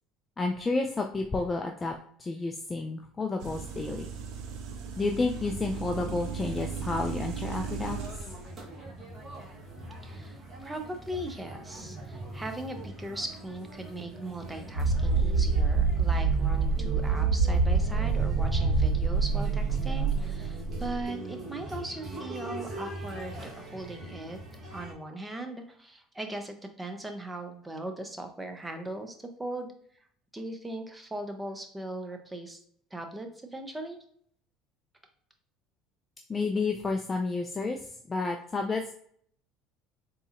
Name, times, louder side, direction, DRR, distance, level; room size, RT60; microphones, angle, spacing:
voice 1, 0.4-1.9 2.2-4.1 5.0-8.0 36.3-37.8 38.1-38.9, left 3 dB, 25° left, 3 dB, 0.4 m, -30 dB
sound 1, 3.4-8.4, right 6 dB, 70° right, 0.5 m, -37 dB
sound 2, 7.6-24.9, right 1 dB, 30° right, 1.2 m, -42 dB
voice 2, 10.0-24.4 24.7-29.7 30.3-32.6 32.9-34.0, right 1 dB, 10° right, 5 dB, 0.7 m, -39 dB
sound 3, 14.7-21.0, right 4 dB, 85° right, 1.2 m, -26 dB
3.9 x 2.8 x 2.5 m, 0.62 s
supercardioid pair, 90°, 0 cm